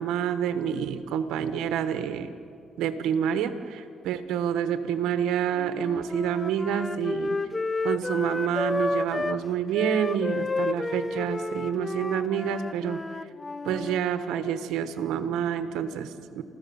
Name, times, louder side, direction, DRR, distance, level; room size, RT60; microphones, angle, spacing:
voice 1, 0.0-2.3 2.8-7.4 7.8-13.0 13.6-16.4, right 8 dB, 90° right, 9 dB, 1.3 m, -28 dB
Wind instrument woodwind instrument, 5.5-9.4 9.7-14.0, left 3 dB, 20° left, 0.5 m, -31 dB
28.0 x 15.0 x 7.1 m, 2.4 s
cardioid pair, 100°, 0 cm